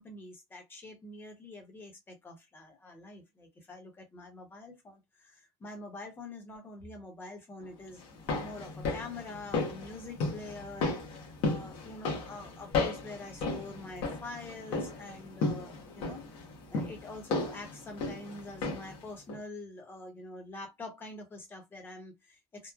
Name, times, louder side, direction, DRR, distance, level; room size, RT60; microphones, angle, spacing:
voice 1, 0.0-8.0 8.4-11.0 11.4-16.2 16.7-22.7, left 2 dB, 20° left, 0.9 m, -45 dB
sound 1, 8.0-19.0 19.3-19.4, left 3 dB, 65° left, 1.0 m, -35 dB
3.1 x 2.0 x 2.3 m
cardioid pair, 140°, 10 cm